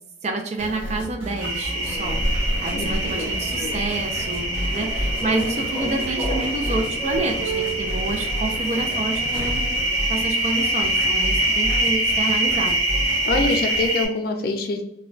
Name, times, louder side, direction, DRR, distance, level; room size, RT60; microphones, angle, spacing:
voice 1, 0.2-2.2 2.6-9.6 10.1-12.8, right 2 dB, 35° right, 3 dB, 0.4 m, -28 dB
sound 1, 0.6-14.0, equal, 85° right, 1.0 m, -32 dB
sound 2, 1.4-14.1, right 1 dB, 55° right, 0.7 m, -25 dB
Human voice / Subway metro underground, 1.8-9.8, right 1 dB, 5° right, 0.8 m, -31 dB
voice 2, 13.2-14.8, left 2 dB, 50° left, 4 dB, 0.4 m, -24 dB
2.2 x 2.2 x 3.7 m, 0.78 s
head